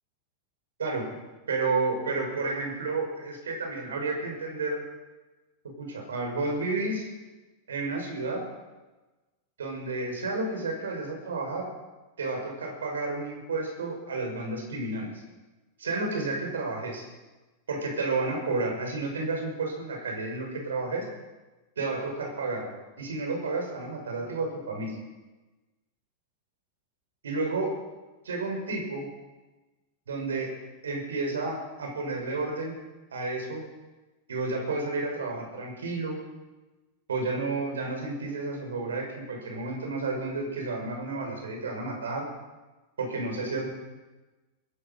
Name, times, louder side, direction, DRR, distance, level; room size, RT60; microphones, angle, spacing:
voice 1, 1.5-4.8 5.8-7.1 7.7-8.4 9.6-11.7 12.2-15.1 15.8-17.0 17.7-21.1 21.8-22.7 23.0-25.0 27.2-27.7 28.2-29.1 30.1-30.5 30.8-32.8 33.1-33.6 34.3-36.2 37.1-42.3 43.0-43.7, right 3 dB, 65° right, 2 dB, 5.7 m, -31 dB
21.0 x 12.5 x 5.5 m, 1.2 s
figure-of-eight pair, 90°, 0 cm